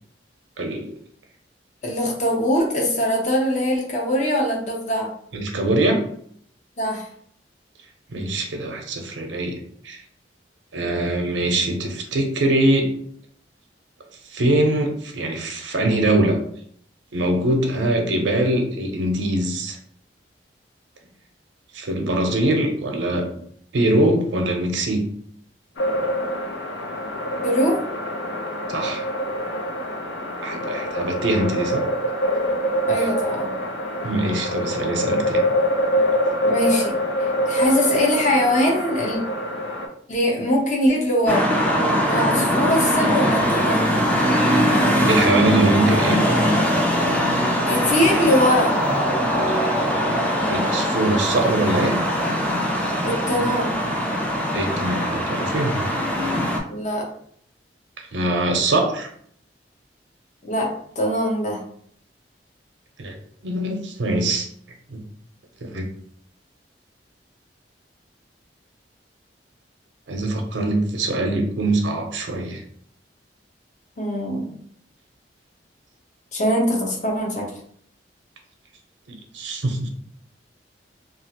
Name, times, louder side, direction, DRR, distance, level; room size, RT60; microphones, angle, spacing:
voice 1, 0.6-0.9 5.3-6.0 8.1-9.6 9.8-10.0 10.7-13.0 14.3-16.4 17.1-19.8 21.7-23.3 23.7-25.1 28.7-29.0 30.4-31.8 34.0-35.4 45.1-46.2 49.5-49.7 50.5-52.0 54.5-55.9 58.0-59.1 63.0-63.2 63.4-64.5 64.9-65.0 65.6-65.8 70.1-72.6 79.3-79.9, right 1 dB, 90° right, 3 dB, 0.6 m, -22 dB
voice 2, 1.8-5.1 6.8-7.1 27.4-27.8 32.9-33.5 36.5-39.2 40.1-41.5 42.1-43.9 47.7-48.8 53.0-53.8 56.7-57.1 60.4-61.6 74.0-74.5 76.3-77.5, equal, 40° left, 0 dB, 0.7 m, -22 dB
sound 1, 25.8-39.9, equal, 75° left, 0.5 m, -25 dB
sound 2, 41.3-56.6, equal, 10° left, 0.4 m, -21 dB
2.9 x 2.4 x 2.8 m, 0.63 s
head